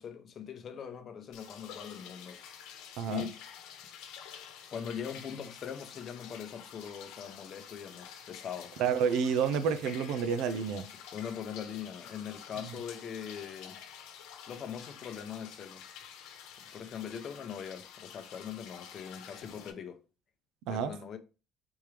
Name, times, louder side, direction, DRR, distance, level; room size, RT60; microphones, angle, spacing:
voice 1, 0.0-2.4 3.0-3.4 4.7-8.8 11.1-13.8 14.5-15.8 16.7-20.0 20.7-21.2, left 8 dB, 35° left, 0.7 m, -41 dB
sound 1, 1.3-19.7, left 8 dB, 80° left, 0.9 m, -49 dB
voice 2, 3.0-3.3 8.8-10.9 20.7-20.9, right 7 dB, 70° right, 0.5 m, -29 dB
4.5 x 3.6 x 3.3 m
cardioid pair, 170°, 0 cm